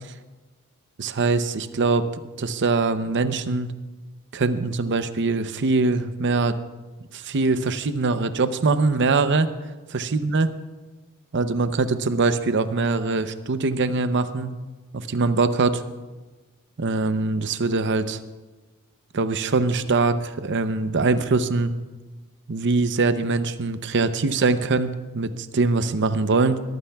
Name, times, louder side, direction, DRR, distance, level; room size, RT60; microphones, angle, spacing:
voice 1, 1.0-3.7 4.3-6.6 7.1-9.5 9.9-10.5 11.3-14.5 14.9-15.8 16.8-18.2 19.1-21.7 22.5-26.6, right 3 dB, 55° right, 11 dB, 0.7 m, -23 dB
21.5 x 14.5 x 2.3 m, 1.2 s
head